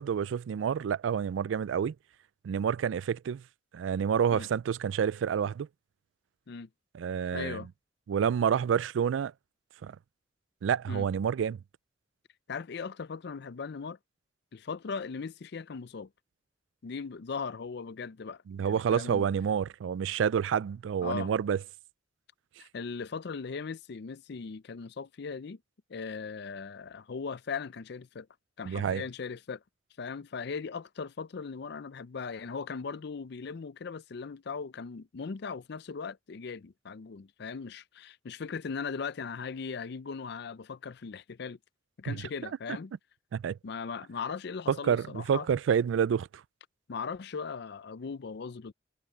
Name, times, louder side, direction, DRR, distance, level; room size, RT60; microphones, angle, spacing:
voice 1, 0.0-1.9 2.4-3.4 3.7-5.7 6.9-7.6 8.1-9.3 9.8-10.0 10.6-11.6 18.5-21.6 28.7-29.0 42.1-42.2 43.3-43.6 44.7-46.3, right 7 dB, 90° right, 0.3 m, -28 dB
voice 2, 7.3-7.7 10.9-11.1 12.5-14.0 14.5-16.1 16.8-19.3 21.0-21.3 22.6-25.6 25.9-28.3 28.6-29.6 30.0-41.6 42.0-42.9 43.6-45.5 46.9-48.7, left 5 dB, 65° left, 0.5 m, -38 dB
head